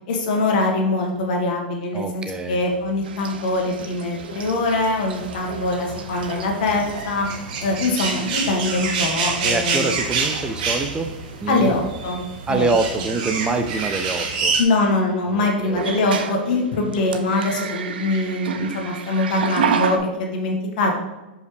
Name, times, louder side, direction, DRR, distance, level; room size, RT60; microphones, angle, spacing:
voice 1, 0.1-7.3 7.6-9.9 11.5-12.2 12.5-12.7 14.6-20.9, left 2 dB, 60° left, 1 dB, 1.7 m, -23 dB
voice 2, 1.9-2.6 9.4-11.1 11.4-11.8 12.5-14.5 15.3-15.9, right 3 dB, 15° right, 7 dB, 0.6 m, -25 dB
sound 1, 3.0-7.2 7.5-7.9 8.9-9.0 9.5-9.9 10.2-10.5 12.6-12.7 15.7-20.0, right 7 dB, 75° right, 0.7 m, -30 dB
sound 2, 3.5-14.6, right 4 dB, 60° right, 1.2 m, -28 dB
6.5 x 5.4 x 3.3 m, 1.1 s
hypercardioid pair, 115°, 5 cm